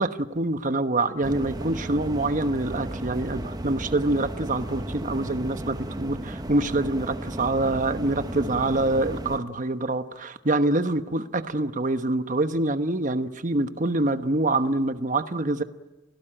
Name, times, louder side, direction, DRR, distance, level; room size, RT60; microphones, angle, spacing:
voice 1, 0.0-15.6, right 2 dB, 40° right, 9 dB, 1.1 m, -25 dB
sound 1, 1.2-9.4, right 1 dB, 20° right, 0.9 m, -34 dB
29.5 x 17.5 x 9.0 m, 1.1 s
head